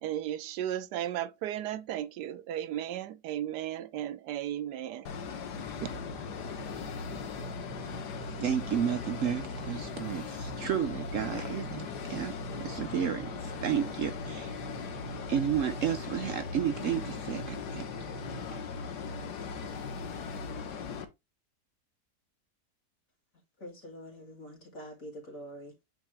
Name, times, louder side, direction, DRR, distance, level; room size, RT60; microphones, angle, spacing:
voice 1, 0.0-5.1, right 11 dB, 85° right, 1.2 m, -35 dB
sound 1, 5.1-21.1, left 5 dB, 80° left, 1.5 m, -39 dB
sound 2, 5.6-18.6, right 9 dB, 30° right, 1.3 m, -49 dB
voice 2, 8.4-12.3 12.6-14.5 15.3-17.8, right 9 dB, 65° right, 0.9 m, -32 dB
voice 3, 23.6-25.8, equal, 55° left, 2.7 m, -45 dB
8.9 x 3.7 x 3.2 m
omnidirectional pair, 1.8 m